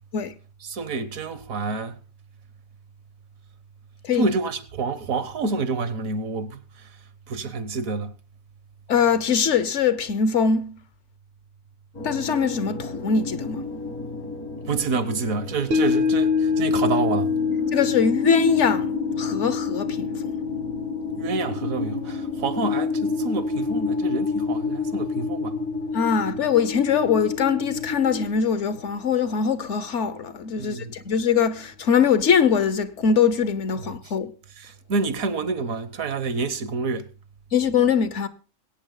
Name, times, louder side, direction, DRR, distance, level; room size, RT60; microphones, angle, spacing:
voice 1, 0.7-1.9 4.2-6.6 7.3-8.1 14.7-17.3 21.2-25.6 30.6-30.9 34.6-37.1, right 3 dB, 70° right, 1.4 m, -28 dB
voice 2, 8.9-10.8 12.0-13.7 17.7-18.9 19.2-20.4 25.9-34.3 37.5-38.3, left 6 dB, 60° left, 1.0 m, -22 dB
sound 1, 11.9-28.3, left 4 dB, 75° left, 2.5 m, -30 dB
sound 2, 15.7-26.1 26.4-26.5, left 5 dB, 50° right, 0.9 m, -27 dB
21.5 x 8.7 x 3.8 m
omnidirectional pair, 1.5 m